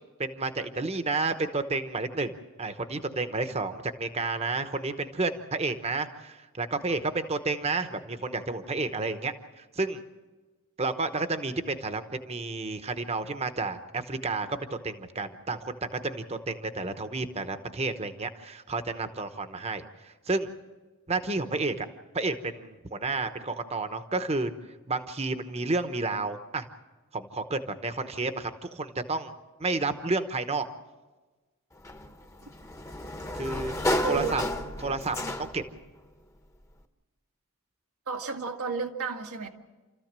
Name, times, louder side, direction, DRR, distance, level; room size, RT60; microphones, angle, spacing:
voice 1, 0.2-10.0 10.8-20.5 21.1-21.9 22.1-24.5 24.9-26.7 27.1-29.3 29.6-30.7 33.3-33.7 34.1-34.4 34.8-35.6, right 3 dB, 30° right, 9 dB, 1.0 m, -31 dB
Sliding door, 31.8-35.8, left 1 dB, 15° left, 1.0 m, -32 dB
voice 2, 34.0-34.4 38.1-39.5, right 5 dB, 90° right, 1 dB, 1.9 m, -32 dB
29.0 x 14.0 x 7.5 m, 1.3 s
head